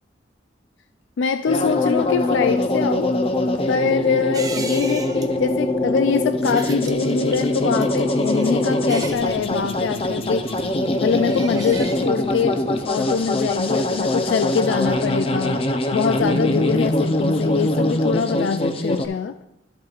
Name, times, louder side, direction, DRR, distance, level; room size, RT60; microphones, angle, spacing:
voice 1, 1.2-3.1 3.7-10.6 11.0-15.6 15.9-19.4, left 6 dB, 75° left, 9 dB, 0.3 m, -24 dB
sound 1, 1.5-19.1, left 1 dB, 30° left, 0.6 m, -22 dB
sound 2, 4.3-14.3 14.6-14.7, right 3 dB, 20° right, 0.6 m, -38 dB
12.0 x 8.1 x 2.4 m, 0.84 s
head